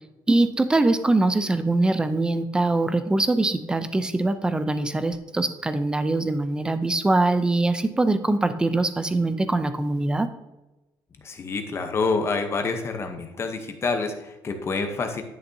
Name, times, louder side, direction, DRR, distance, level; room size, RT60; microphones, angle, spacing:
voice 1, 0.3-10.3, right 2 dB, 10° right, 11 dB, 0.5 m, -23 dB
voice 2, 11.2-15.2, left 4 dB, 30° left, 6 dB, 0.8 m, -27 dB
11.0 x 6.6 x 2.7 m, 1.0 s
cardioid pair, 160°, 9 cm